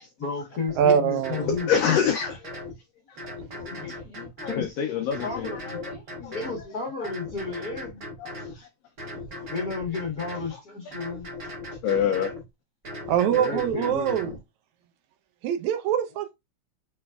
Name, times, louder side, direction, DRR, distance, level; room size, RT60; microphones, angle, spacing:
voice 1, 0.2-1.7 3.3-4.9 5.2-8.0 9.3-11.3 13.3-14.4, left 4 dB, 50° left, 1.1 m, -33 dB
sound 1, 0.7-0.8 1.2-2.8 3.2-4.7 5.1-6.6 7.0-8.6 9.0-10.5 10.9-12.4 12.8-14.4, left 1 dB, 40° right, 2.0 m, -38 dB
voice 2, 0.8-1.5 13.1-14.3 15.4-16.3, right 9 dB, 80° right, 2.0 m, -23 dB
voice 3, 1.5-2.5 3.1-3.2 4.4-6.5 6.8-7.1 8.2-8.7 9.3-9.5 10.5-10.6 11.8-12.3, left 8 dB, 80° left, 1.4 m, -27 dB
6.2 x 3.3 x 2.3 m
omnidirectional pair, 3.4 m